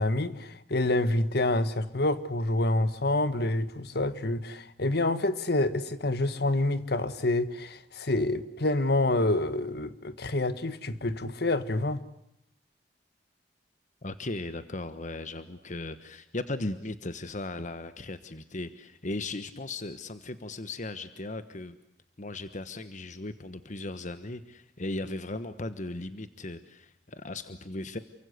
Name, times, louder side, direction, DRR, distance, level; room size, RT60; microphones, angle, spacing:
voice 1, 0.0-12.0, left 2 dB, 65° left, 13 dB, 1.6 m, -27 dB
voice 2, 14.0-21.8 22.2-28.0, left 2 dB, 45° left, 11 dB, 1.3 m, -37 dB
29.0 x 24.0 x 8.2 m, 0.73 s
head